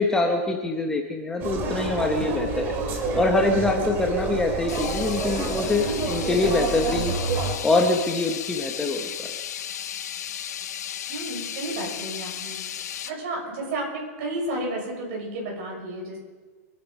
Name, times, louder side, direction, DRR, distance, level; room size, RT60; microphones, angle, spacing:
voice 1, 0.0-2.8 3.1-7.1 7.4-9.3, left 2 dB, 5° left, 2 dB, 0.9 m, -24 dB
sound 1, 1.4-7.5, right 3 dB, 25° right, 2.4 m, -28 dB
sound 2, 2.1-2.4 3.0-3.2 4.2-4.3 4.7-13.1, left 10 dB, 90° left, 0.9 m, -34 dB
voice 2, 11.1-16.2, right 1 dB, 45° right, -1 dB, 6.5 m, -32 dB
25.0 x 9.5 x 5.4 m, 1.4 s
supercardioid pair, 165°, 9 cm